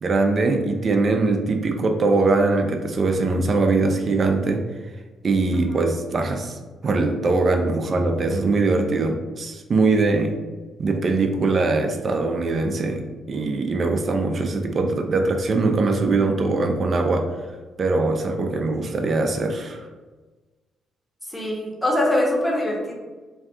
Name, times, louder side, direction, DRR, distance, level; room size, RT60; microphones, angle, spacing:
voice 1, 0.0-4.6 5.2-10.3 10.8-17.3 17.8-19.9, right 3 dB, 45° right, 4 dB, 0.4 m, -22 dB
voice 2, 21.3-22.9, left 1 dB, 5° left, -2 dB, 0.8 m, -23 dB
2.6 x 2.3 x 3.5 m, 1.3 s
cardioid pair, 90°, 0 cm